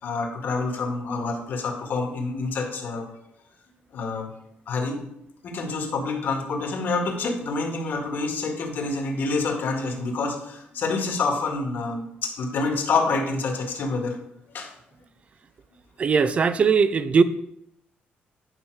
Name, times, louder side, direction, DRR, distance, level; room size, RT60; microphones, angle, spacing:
voice 1, 0.0-3.1 3.9-4.3 4.7-5.0 5.4-14.2 14.5-14.7, left 3 dB, 60° left, 1.8 m, -27 dB
voice 2, 16.0-17.2, right 5 dB, 35° right, 0.4 m, -19 dB
9.9 x 5.5 x 4.8 m
cardioid pair, 145°, 4 cm